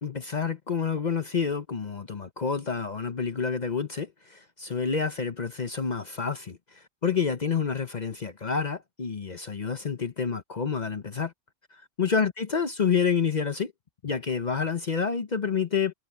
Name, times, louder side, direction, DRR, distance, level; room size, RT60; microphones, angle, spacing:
voice 1, 0.0-11.3 11.7-13.7 14.0-15.9, left 6 dB, 40° left, 0.8 m, -28 dB
omnidirectional pair, 1.2 m